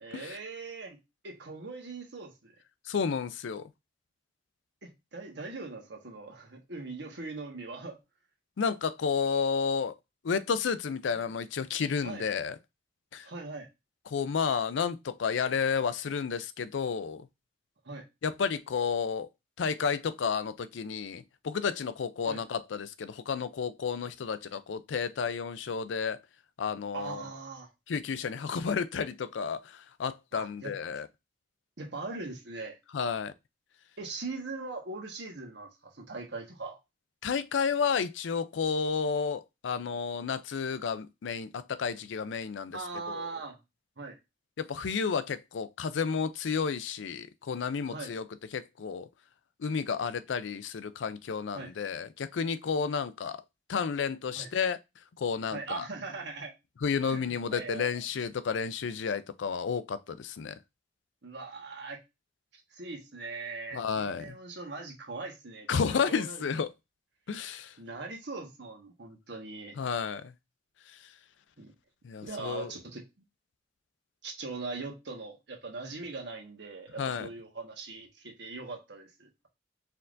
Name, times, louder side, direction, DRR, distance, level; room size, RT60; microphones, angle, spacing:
voice 1, 0.0-2.5 4.8-8.0 12.0-12.2 13.2-13.7 17.8-18.1 22.2-22.4 26.9-27.7 30.3-30.7 31.8-32.8 34.0-36.8 42.7-43.6 44.0-44.2 47.9-48.1 51.5-51.7 54.3-54.5 55.5-56.5 57.1-57.9 61.2-62.0 62.5-66.4 67.8-69.8 71.6-71.7 72.2-73.0 74.2-79.5, right 3 dB, 65° right, 1.3 m, -41 dB
voice 2, 2.9-3.7 8.6-9.9 10.2-12.6 13.1-13.3 14.1-17.3 18.2-19.3 19.6-26.2 26.6-27.2 27.9-31.1 32.9-33.3 37.2-42.8 43.1-43.3 44.6-48.2 48.5-49.1 49.6-53.4 53.7-54.8 55.2-55.8 56.8-60.5 63.7-64.4 65.7-66.7 67.3-67.7 69.8-70.3 70.9-71.0 72.0-72.7 77.0-77.3, left 6 dB, 80° left, 0.4 m, -31 dB
4.5 x 3.6 x 2.5 m
head